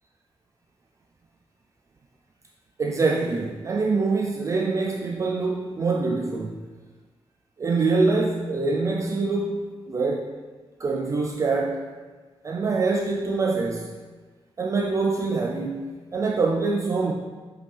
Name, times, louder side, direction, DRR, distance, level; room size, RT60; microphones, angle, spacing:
voice 1, 2.8-6.6 7.6-10.3 10.8-11.9 12.4-13.9 14.6-17.1, right 3 dB, 35° right, 1 dB, 0.4 m, -25 dB
7.9 x 5.3 x 3.3 m, 1.4 s
wide cardioid pair, 175°, 9 cm